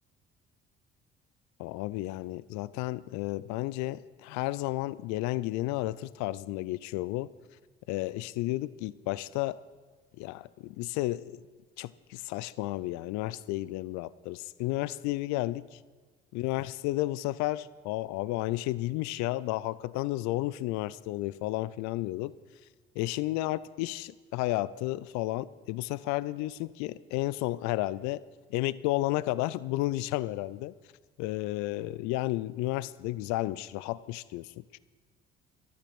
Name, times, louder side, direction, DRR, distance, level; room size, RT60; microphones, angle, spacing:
voice 1, 1.6-7.3 7.9-9.6 10.2-11.4 11.8-15.8 16.3-22.3 23.0-28.2 28.5-30.7 31.2-34.8, left 17 dB, 65° left, 19 dB, 0.6 m, -32 dB
13.5 x 13.0 x 5.9 m, 1.4 s
figure-of-eight pair, 50°, 31 cm